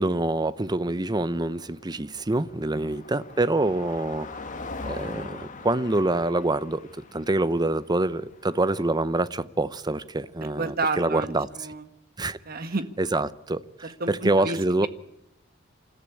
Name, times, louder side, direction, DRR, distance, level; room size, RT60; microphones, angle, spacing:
voice 1, 0.0-4.3 4.9-11.5 12.2-12.4 13.0-14.9, right 2 dB, 20° right, 0.7 m, -26 dB
Car passing by, 0.7-8.9, left 3 dB, 40° left, 1.8 m, -42 dB
voice 2, 10.4-11.8 12.4-12.9 14.0-14.9, right 3 dB, 50° right, 1.6 m, -31 dB
27.5 x 14.0 x 8.5 m
head